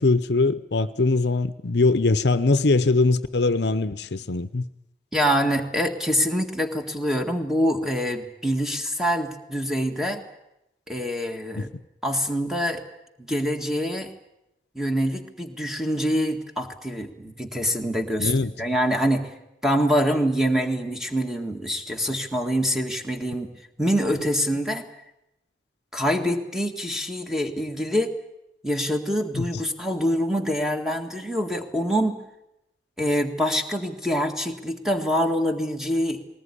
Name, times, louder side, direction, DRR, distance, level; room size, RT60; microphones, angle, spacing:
voice 1, 0.0-4.6 11.6-11.7 18.2-18.5 29.3-29.6, left 3 dB, 65° left, 0.8 m, -22 dB
voice 2, 5.1-10.2 10.9-11.7 12.0-12.8 13.2-14.1 14.8-18.3 18.6-19.3 19.6-23.5 23.8-24.8 25.9-28.1 28.6-32.2 33.0-36.2, equal, ahead, 1.8 m, -25 dB
20.0 x 19.5 x 9.9 m
head